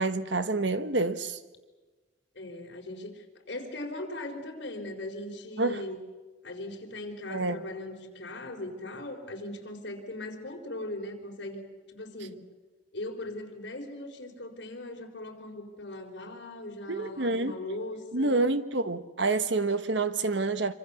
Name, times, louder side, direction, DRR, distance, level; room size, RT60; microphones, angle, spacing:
voice 1, 0.0-1.4 5.6-5.8 7.3-7.6 16.9-17.5 18.1-20.7, right 3 dB, 75° right, 1.3 m, -28 dB
voice 2, 2.3-6.0 6.4-11.6 11.9-12.4 12.9-18.4, left 1 dB, 65° left, 4.3 m, -39 dB
26.5 x 25.5 x 7.1 m
head